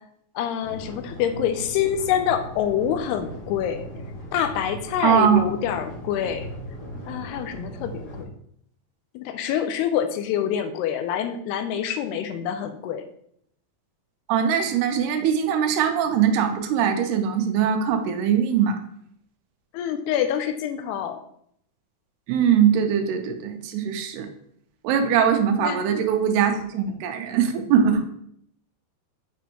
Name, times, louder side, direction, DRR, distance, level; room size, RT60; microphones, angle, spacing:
voice 1, 0.4-3.8 4.3-6.5 7.1-8.3 9.1-13.0 19.7-21.2 25.6-25.8, left 9 dB, 85° left, 8 dB, 2.6 m, -26 dB
sound 1, 0.6-8.2, equal, 60° left, 3.2 m, -38 dB
voice 2, 5.0-5.5 14.3-18.8 22.3-24.3 24.8-28.1, right 8 dB, 85° right, 6 dB, 2.7 m, -21 dB
6.9 x 6.2 x 3.0 m, 0.69 s
omnidirectional pair, 4.7 m